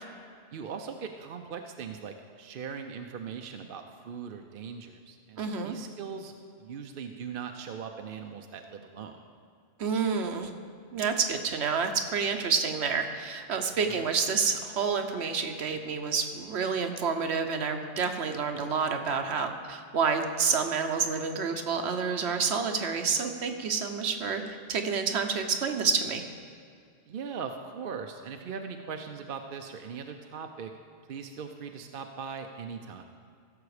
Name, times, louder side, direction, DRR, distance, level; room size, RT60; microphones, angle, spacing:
voice 1, 0.5-9.2 13.9-14.0 27.1-30.7 31.1-33.0, right 6 dB, 60° right, 5 dB, 0.7 m, -40 dB
voice 2, 5.4-5.8 9.8-10.5 10.9-26.2, right 5 dB, 75° right, 6 dB, 1.1 m, -29 dB
15.5 x 7.0 x 4.9 m, 2.3 s
omnidirectional pair, 1.1 m